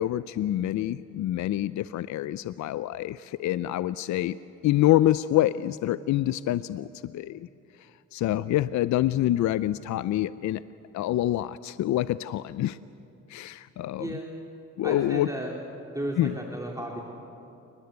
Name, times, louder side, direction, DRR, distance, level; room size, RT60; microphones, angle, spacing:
voice 1, 0.0-4.4 4.6-7.5 8.1-10.6 10.9-12.8 13.3-14.1 14.8-15.3 16.2-16.3, left 13 dB, 70° left, 15 dB, 0.5 m, -26 dB
voice 2, 13.9-14.3 14.8-15.5 15.8-17.0, right 1 dB, 10° right, -1 dB, 3.4 m, -34 dB
29.0 x 20.5 x 8.2 m, 2.8 s
cardioid pair, 90°, 30 cm